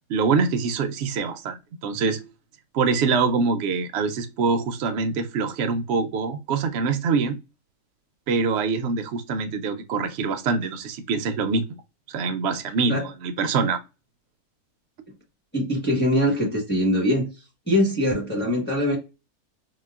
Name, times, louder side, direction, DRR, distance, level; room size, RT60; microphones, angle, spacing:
voice 1, 0.1-1.6 1.8-2.2 2.7-7.4 8.3-11.8 12.1-13.8, right 4 dB, 65° right, 0.6 m, -24 dB
voice 2, 15.5-17.3 17.7-19.0, equal, 10° left, 0.8 m, -22 dB
3.9 x 2.1 x 2.3 m
omnidirectional pair, 1.5 m